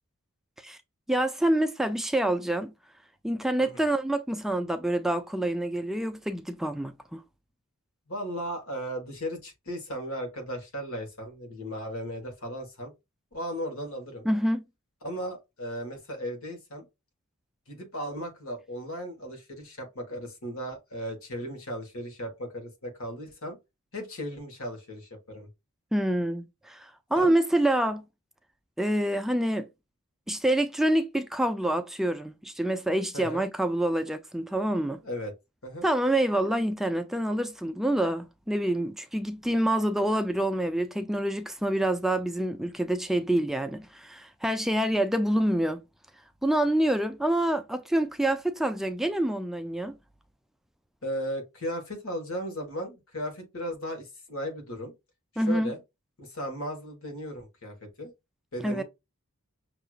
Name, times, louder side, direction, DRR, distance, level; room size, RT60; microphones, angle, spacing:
voice 1, 1.1-2.7 3.2-7.2 14.3-14.6 25.9-28.0 28.8-29.7 30.3-35.0 35.8-45.8 46.4-50.0 55.4-55.7 58.6-58.8, right 1 dB, ahead, 0.3 m, -27 dB
voice 2, 8.1-12.9 13.3-14.3 15.0-16.9 17.7-23.6 23.9-25.5 27.2-27.3 33.1-33.4 35.0-35.3 35.6-35.9 51.0-54.9 55.3-55.8 56.2-58.1 58.5-58.8, equal, 65° left, 1.4 m, -36 dB
6.2 x 2.8 x 2.4 m
head